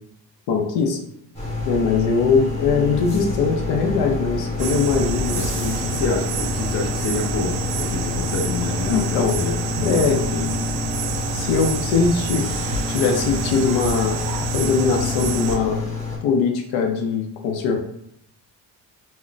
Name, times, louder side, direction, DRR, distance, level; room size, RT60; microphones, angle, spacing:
voice 1, 0.5-1.0 1.7-5.7 6.0-6.1 8.9-9.4 9.8-10.2 11.3-12.6 12.9-14.2 14.5-15.8 16.2-17.8, left 5 dB, 85° left, 2 dB, 0.6 m, -21 dB
sound 1, 1.3-16.2, left 3 dB, 15° left, 0.8 m, -28 dB
sound 2, 4.6-15.6, right 5 dB, 70° right, 0.5 m, -28 dB
voice 2, 5.8-10.5, left 4 dB, 35° left, 2 dB, 0.4 m, -28 dB
2.2 x 2.1 x 3.8 m, 0.74 s
cardioid pair, 120°, 44 cm